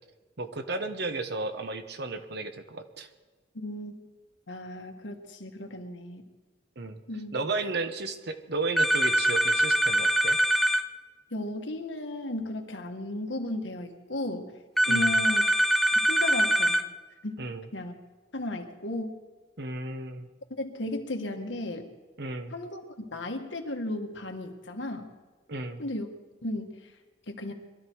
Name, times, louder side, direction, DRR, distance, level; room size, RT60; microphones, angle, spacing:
voice 1, 0.4-3.1 6.8-7.0 7.3-10.4 14.9-15.2 17.4-17.7 19.6-20.3 22.2-22.5 25.5-25.8, right 3 dB, 65° right, 8 dB, 1.2 m, -33 dB
voice 2, 3.5-3.9 4.5-6.2 7.1-7.3 11.3-14.5 14.9-15.5 16.1-16.8 17.2-17.4 17.7-17.9 18.3-19.2 20.6-21.9 22.5-25.1 25.8-26.1 26.4-26.8 27.3-27.5, left 1 dB, 85° left, 3 dB, 1.8 m, -35 dB
sound 1, 8.8-10.8 14.8-16.8, right 1 dB, ahead, 0.5 m, -23 dB
22.5 x 13.0 x 4.7 m, 1.3 s
head